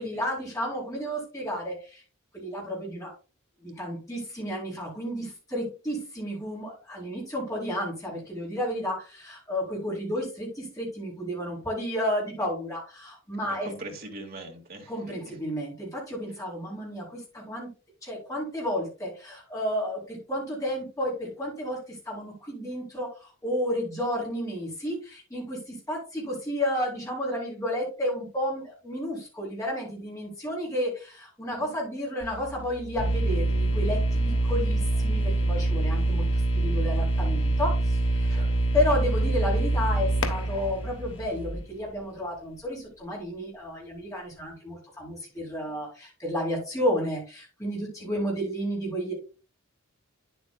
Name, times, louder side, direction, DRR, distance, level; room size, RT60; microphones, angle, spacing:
voice 1, 0.0-2.0 2.3-3.1 3.6-13.7 14.9-17.7 18.0-38.4 38.7-49.1, equal, 15° left, -4 dB, 4.0 m, -32 dB
voice 2, 13.4-15.4 31.4-31.7 38.3-38.6 39.0-39.2 48.0-48.3, right 2 dB, 45° right, 1 dB, 2.1 m, -43 dB
sound 1, 32.2-41.6, right 1 dB, 5° right, 3.6 m, -43 dB
sound 2, 33.0-41.9, right 2 dB, 75° left, 1.3 m, -25 dB
9.6 x 8.0 x 2.4 m, 0.33 s
head